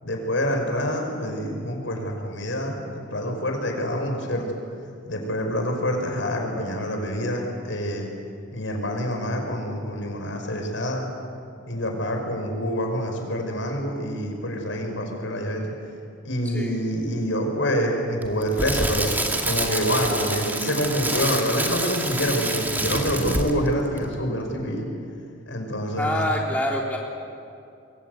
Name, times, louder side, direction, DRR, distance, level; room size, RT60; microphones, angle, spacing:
voice 1, 0.0-4.4 5.0-8.1 8.5-11.1 11.7-15.7 16.2-24.9 25.5-26.3, equal, 75° left, 3 dB, 5.6 m, -26 dB
Crackle, 18.2-23.7 24.0-24.2, right 2 dB, 10° right, 2.3 m, -27 dB
voice 2, 26.0-27.0, left 1 dB, 10° left, -3 dB, 3.5 m, -25 dB
26.5 x 23.5 x 8.2 m, 2.5 s
head